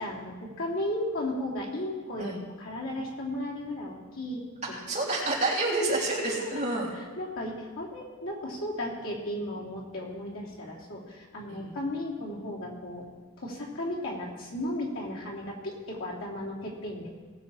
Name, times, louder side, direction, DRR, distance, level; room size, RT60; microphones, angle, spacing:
voice 1, 0.0-4.4 6.4-6.6 7.2-13.0 13.4-17.1, left 1 dB, 75° left, -4 dB, 3.1 m, -35 dB
voice 2, 4.7-6.9 11.5-11.8, right 2 dB, 35° right, -4 dB, 3.4 m, -29 dB
19.0 x 7.9 x 4.4 m, 1.4 s
head